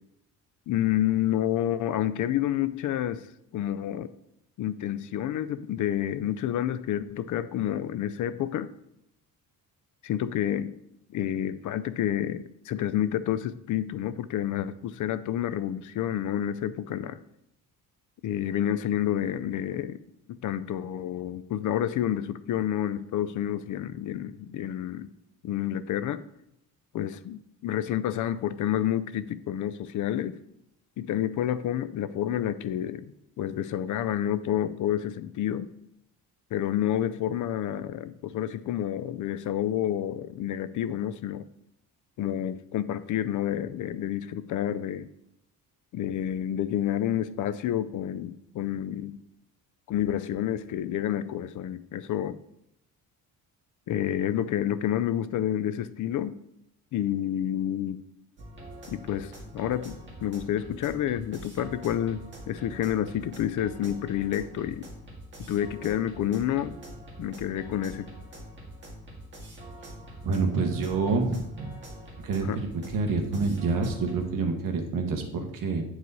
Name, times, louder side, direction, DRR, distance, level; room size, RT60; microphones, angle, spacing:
voice 1, 0.7-3.3 3.5-4.1 4.6-8.7 10.0-10.8 11.1-17.2 18.2-20.0 20.4-25.1 25.4-26.2 26.9-30.4 31.0-35.7 36.5-41.4 42.2-45.1 45.9-49.2 49.9-52.4 53.9-56.4 56.9-58.0 58.9-64.9 65.4-66.8 67.2-68.1 72.4-72.6, left 11 dB, 60° left, 14 dB, 0.4 m, -29 dB
sound 1, 58.4-74.2, right 1 dB, 30° right, 2.0 m, -44 dB
voice 2, 70.2-71.7 72.2-72.7 72.9-75.8, right 4 dB, 65° right, 4 dB, 1.3 m, -27 dB
9.1 x 4.7 x 4.0 m, 0.82 s
cardioid pair, 155°, 36 cm